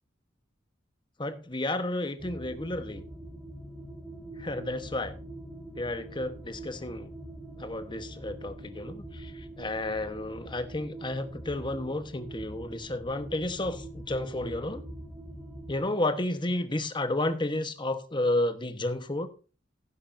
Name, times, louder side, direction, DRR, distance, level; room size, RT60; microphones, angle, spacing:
voice 1, 1.2-3.0 4.4-5.2 5.7-7.1 7.6-14.8 15.7-19.3, left 1 dB, 25° left, 1.2 m, -31 dB
sound 1, 2.2-15.8, right 1 dB, ahead, 2.3 m, -44 dB
16.5 x 9.8 x 2.7 m
head